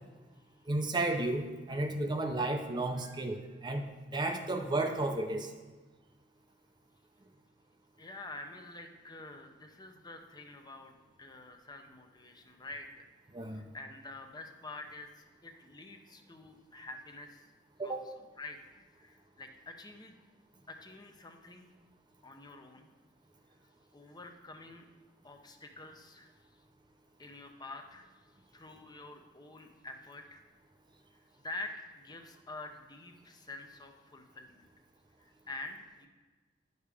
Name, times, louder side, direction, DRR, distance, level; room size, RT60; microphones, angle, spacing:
voice 1, 0.7-5.5 13.3-13.6 17.8-18.0, right 2 dB, 25° right, 4 dB, 0.6 m, -33 dB
voice 2, 8.0-13.1 13.5-17.5 17.8-18.6 18.9-20.2 20.7-21.7 22.2-22.9 23.9-24.9 25.2-26.3 27.2-28.1 28.5-30.4 31.3-34.7 35.2-36.1, left 2 dB, 20° left, 4 dB, 0.6 m, -47 dB
10.0 x 6.6 x 3.4 m, 1.3 s
head